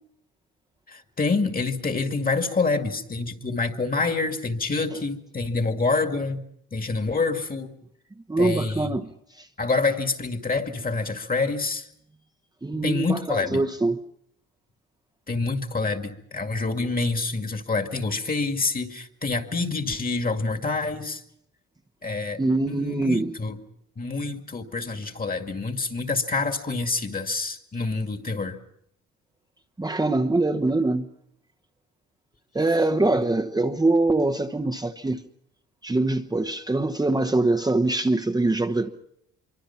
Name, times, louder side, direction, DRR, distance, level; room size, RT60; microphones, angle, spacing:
voice 1, 0.9-6.4 6.7-7.7 8.4-9.0 9.6-11.9 12.7-13.6 15.3-21.2 22.0-22.4 22.7-23.6 24.0-28.6, left 3 dB, 30° left, 2.2 m, -27 dB
voice 2, 8.3-9.1 9.4-9.5 12.6-14.0 22.4-23.3 29.8-31.1 32.5-35.2 35.8-38.9, right 2 dB, 15° right, 1.1 m, -23 dB
25.5 x 24.0 x 5.9 m
cardioid pair, 90°, 30 cm